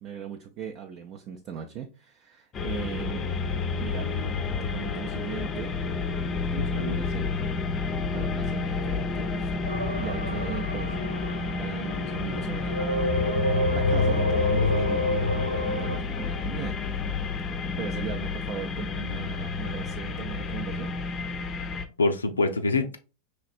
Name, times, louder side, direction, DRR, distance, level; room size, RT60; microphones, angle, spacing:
voice 1, 0.0-3.3 3.8-4.1 4.7-5.7 6.5-7.4 8.1-9.6 10.0-10.9 11.6-13.3 13.7-15.1 15.5-16.8 17.8-21.0, right 8 dB, 40° right, 4 dB, 0.5 m, -38 dB
sound 1, 2.5-21.8, left 4 dB, 25° left, 0.5 m, -30 dB
voice 2, 6.6-7.0 22.0-23.0, left 3 dB, 75° left, 6 dB, 0.4 m, -25 dB
sound 2, 9.7-12.1 12.7-16.0, left 2 dB, 80° right, 0.8 m, -27 dB
4.9 x 3.3 x 2.5 m, 0.33 s
figure-of-eight pair, 90°, 0 cm